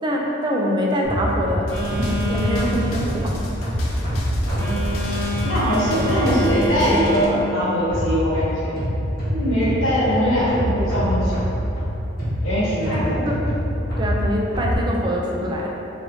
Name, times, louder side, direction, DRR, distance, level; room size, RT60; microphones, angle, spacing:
voice 1, 0.0-3.4 3.8-4.1 12.9-13.4 13.9-15.7, equal, 20° right, -2 dB, 0.3 m, -24 dB
sound 1, 1.0-7.1 7.9-14.8, equal, 50° left, 1.0 m, -25 dB
sound 2, 1.7-7.3, left 2 dB, 75° left, 0.4 m, -36 dB
Telephone, 1.7-7.2, equal, 15° left, 0.9 m, -28 dB
voice 2, 5.4-8.8 9.3-11.4 12.4-13.2, equal, 90° left, -10 dB, 1.2 m, -21 dB
3.2 x 2.6 x 2.7 m, 2.9 s
head